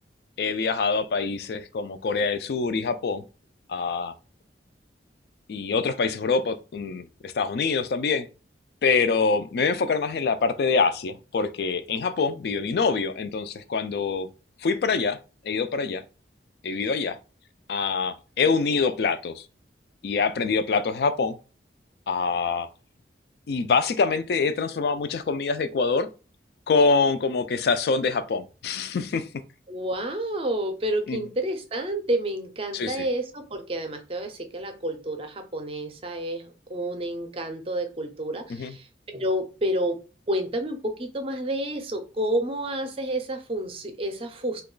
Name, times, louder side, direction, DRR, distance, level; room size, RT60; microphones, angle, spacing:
voice 1, 0.4-3.2 3.7-4.1 5.5-8.3 8.8-14.3 14.6-15.2 15.4-16.0 16.6-17.2 17.7-19.5 20.0-21.4 22.1-22.7 23.5-26.1 26.7-29.3 31.1-31.2 32.7-33.1 38.5-38.7, left 4 dB, 60° left, 0.3 m, -25 dB
voice 2, 29.7-38.9 39.1-44.6, right 1 dB, 30° right, 0.5 m, -29 dB
2.9 x 2.3 x 3.8 m
head